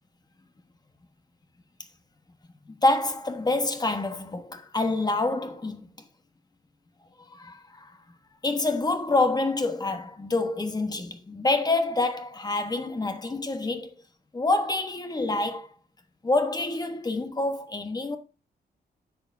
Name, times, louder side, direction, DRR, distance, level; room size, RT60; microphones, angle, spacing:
voice 1, 2.6-5.9 7.3-8.0 8.4-13.9 14.3-15.7 16.2-18.2, left 2 dB, 25° left, 1.1 m, -27 dB
10.0 x 7.3 x 2.6 m
wide cardioid pair, 125°, 17 cm